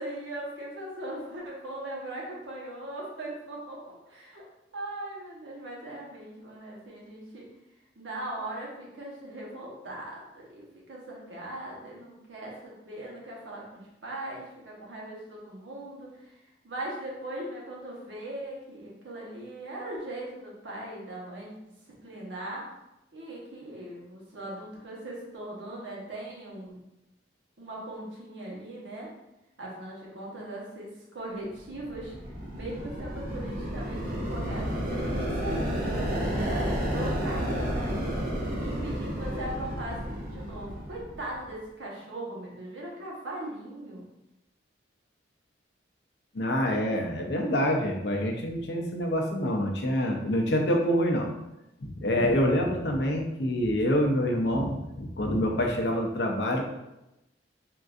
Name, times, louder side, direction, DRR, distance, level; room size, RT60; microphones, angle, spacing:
voice 1, 0.0-4.4 4.7-7.5 8.0-16.3 16.6-21.5 22.0-22.7 23.1-26.8 27.6-29.1 29.6-32.1 32.5-44.1, right 1 dB, 80° right, -4 dB, 1.0 m, -39 dB
sound 1, 31.6-41.4, equal, 50° right, 0.6 m, -31 dB
voice 2, 46.3-51.3 51.8-56.6, equal, 65° left, 1 dB, 0.5 m, -26 dB
3.7 x 2.5 x 2.4 m, 0.93 s
head